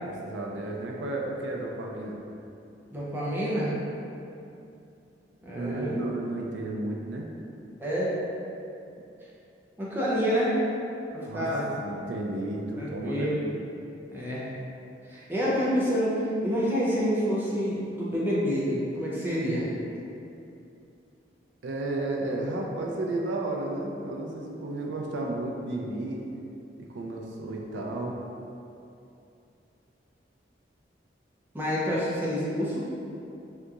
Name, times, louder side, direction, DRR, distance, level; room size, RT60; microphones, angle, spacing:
voice 1, 0.0-2.2 5.5-7.3 11.3-11.5 11.8-13.3 21.6-26.2 26.8-28.2, right 2 dB, 80° right, -1 dB, 0.4 m, -33 dB
voice 2, 2.9-3.7 5.4-6.1 7.8-8.1 9.8-10.5 11.1-11.7 12.8-13.4 14.1-14.4 15.1-19.7 31.5-32.9, equal, 10° right, -8 dB, 0.5 m, -28 dB
3.5 x 2.8 x 2.4 m, 2.7 s
head